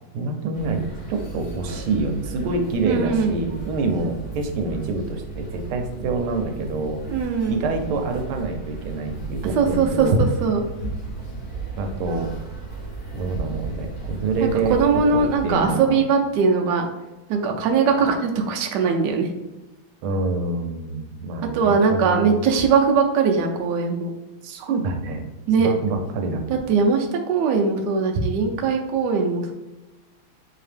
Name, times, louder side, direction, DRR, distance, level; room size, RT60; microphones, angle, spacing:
voice 1, 0.1-7.0 7.5-10.2 11.8-12.3 13.1-14.8 15.1-16.0 20.0-22.4 24.4-25.2 25.6-26.6, right 3 dB, 90° right, 5 dB, 1.5 m, -26 dB
sound 1, 0.5-15.7, right 3 dB, 75° left, 2.1 m, -35 dB
voice 2, 2.8-3.3 7.1-7.6 9.6-10.6 14.4-16.9 17.3-19.3 21.5-24.1 25.5-25.7 26.5-29.5, right 5 dB, 70° right, 3 dB, 1.0 m, -20 dB
4.4 x 2.8 x 3.3 m, 1.0 s
omnidirectional pair, 2.3 m